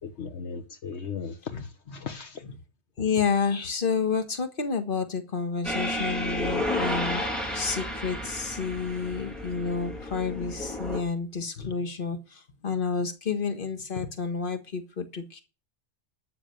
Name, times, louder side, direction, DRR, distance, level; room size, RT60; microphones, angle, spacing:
voice 1, 0.0-2.4, left 6 dB, 75° left, 1.3 m, -37 dB
voice 2, 3.0-7.3 7.5-15.4, left 5 dB, 50° left, 1.7 m, -30 dB
sound 1, 5.6-11.0, left 1 dB, ahead, 3.1 m, -32 dB
12.0 x 6.8 x 6.8 m
omnidirectional pair, 1.2 m